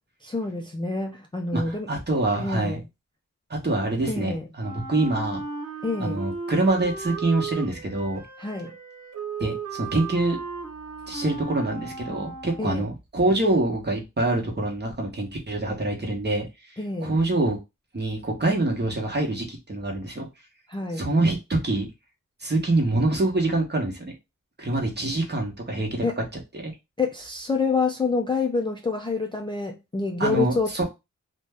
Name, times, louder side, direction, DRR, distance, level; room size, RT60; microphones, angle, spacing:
voice 1, 0.2-1.9 2.4-2.8 4.1-4.5 5.8-6.2 8.4-8.7 12.6-12.9 16.8-17.2 20.7-21.1 26.0-26.2 27.0-30.8, left 3 dB, 15° left, 0.3 m, -27 dB
voice 2, 1.5-2.8 3.5-5.4 6.0-8.2 9.4-10.4 11.1-16.5 17.0-17.6 17.9-20.3 20.9-21.9 22.4-24.1 24.6-26.0 26.5-26.7 30.2-30.8, right 2 dB, 35° right, 0.9 m, -25 dB
Wind instrument woodwind instrument, 4.6-12.9, right 4 dB, 75° right, 0.9 m, -36 dB
2.6 x 2.1 x 3.3 m
wide cardioid pair, 100°, 31 cm